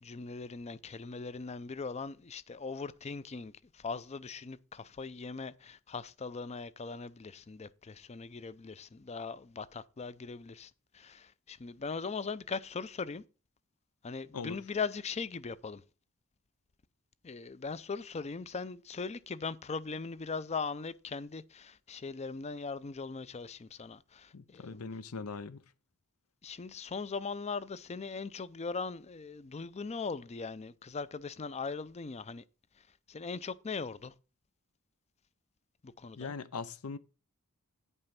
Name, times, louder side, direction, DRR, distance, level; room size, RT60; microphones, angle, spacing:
voice 1, 0.0-13.2 14.0-15.8 17.2-24.8 26.4-32.4 33.1-34.1 35.8-36.3, left 4 dB, 30° left, 0.5 m, -40 dB
voice 2, 24.3-25.6 36.2-37.0, left 4 dB, 75° left, 0.7 m, -40 dB
9.6 x 5.5 x 5.9 m
head